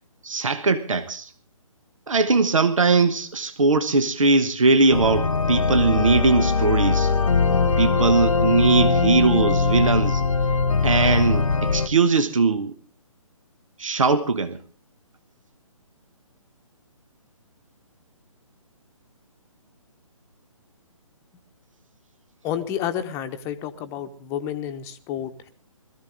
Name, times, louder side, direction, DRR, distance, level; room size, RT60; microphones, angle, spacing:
voice 1, 0.2-1.3 2.1-7.1 7.8-10.2 10.8-12.8 13.8-14.6, right 3 dB, 65° right, 1.3 m, -20 dB
sound 1, 4.9-11.9, left 4 dB, 70° left, 1.2 m, -21 dB
voice 2, 22.4-25.5, left 10 dB, 15° left, 1.0 m, -30 dB
21.5 x 14.5 x 3.7 m
figure-of-eight pair, 140°, 18 cm